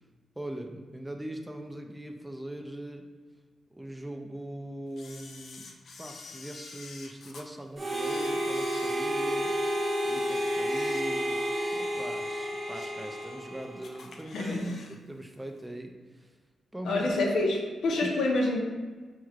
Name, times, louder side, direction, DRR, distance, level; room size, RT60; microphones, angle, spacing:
voice 1, 0.4-3.2 3.7-5.7 6.0-9.6 10.0-14.6 14.9-16.4 16.7-17.1 18.0-18.1, right 1 dB, 10° right, 4 dB, 0.4 m, -41 dB
Camera, 5.0-7.5 7.9-9.6 10.0-11.4 11.8-11.9 12.4-13.1 13.4-13.5 13.8-15.0 15.2-15.3, left 4 dB, 60° left, 0.4 m, -49 dB
Harmonica, 7.8-14.1, equal, 30° right, 0.8 m, -31 dB
voice 2, 14.3-14.7 16.8-18.6, left 2 dB, 85° left, -1 dB, 0.8 m, -27 dB
6.0 x 3.1 x 2.4 m, 1.4 s
cardioid pair, 90°, 0 cm